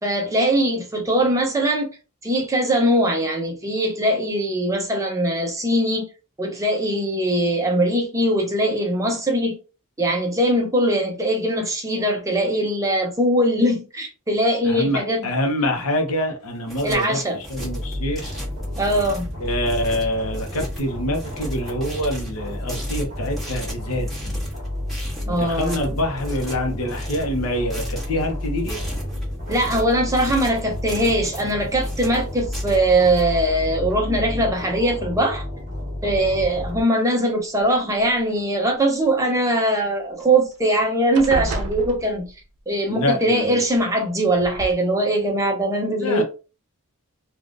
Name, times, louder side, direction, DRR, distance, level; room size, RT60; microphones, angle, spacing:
voice 1, 0.0-1.9 2.2-6.1 6.4-9.6 10.0-15.3 16.8-17.4 18.8-19.3 25.3-26.0 29.5-35.4 36.0-42.3 42.7-46.2, right 1 dB, 15° right, 0.6 m, -21 dB
voice 2, 14.6-17.2 17.5-18.4 19.4-24.4 25.3-28.8 42.9-43.6 46.0-46.2, left 1 dB, 70° left, 0.8 m, -26 dB
sound 1, 16.4-33.2, right 1 dB, ahead, 1.4 m, -37 dB
sound 2, 17.6-36.8, left 1 dB, 35° right, 1.4 m, -30 dB
sound 3, 36.1-36.7 37.6-38.4 40.2-40.3 40.6-40.8 41.1-42.6 43.7-43.8 44.4-44.7, right 2 dB, 80° right, 0.6 m, -31 dB
3.4 x 2.4 x 2.5 m
head